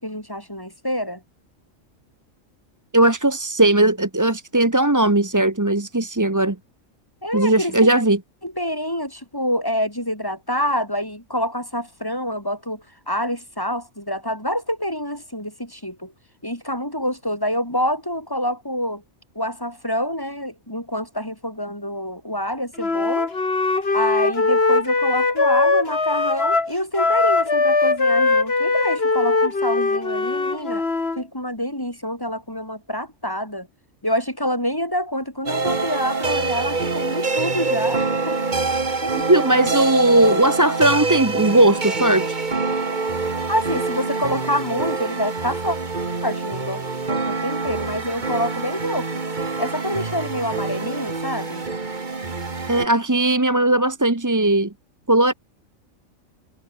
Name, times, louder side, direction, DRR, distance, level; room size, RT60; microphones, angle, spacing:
voice 1, 0.0-1.2 7.2-7.9 8.4-16.1 16.4-19.0 19.3-23.3 23.9-30.8 31.2-33.7 34.0-38.4 39.0-39.3 43.5-45.8 46.2-46.8 47.1-49.2 49.6-51.6, equal, 15° left, 6.0 m, -27 dB
voice 2, 2.9-6.6 7.3-8.2 39.3-42.4 52.7-54.7 55.1-55.3, right 1 dB, 15° right, 1.2 m, -18 dB
Wind instrument woodwind instrument, 22.8-31.2, left 3 dB, 45° left, 2.8 m, -20 dB
sound 1, 35.5-52.9, right 3 dB, 35° right, 1.8 m, -25 dB
omnidirectional pair, 1.4 m